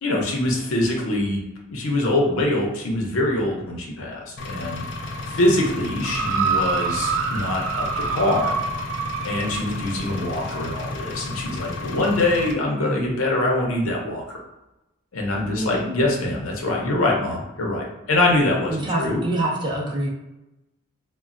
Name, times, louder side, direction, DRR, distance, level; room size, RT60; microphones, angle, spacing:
voice 1, 0.0-1.4 1.7-4.8 5.3-8.6 9.2-14.4 15.1-19.2, left 1 dB, 85° left, -1 dB, 0.7 m, -24 dB
Engine, 4.4-12.5, left 2 dB, 60° left, 0.4 m, -33 dB
sound 1, 6.0-9.7 10.5-10.6, right 5 dB, 80° right, 0.3 m, -26 dB
voice 2, 15.6-15.9 18.7-20.1, right 1 dB, 20° right, -3 dB, 0.5 m, -25 dB
3.1 x 2.2 x 2.5 m, 0.98 s
head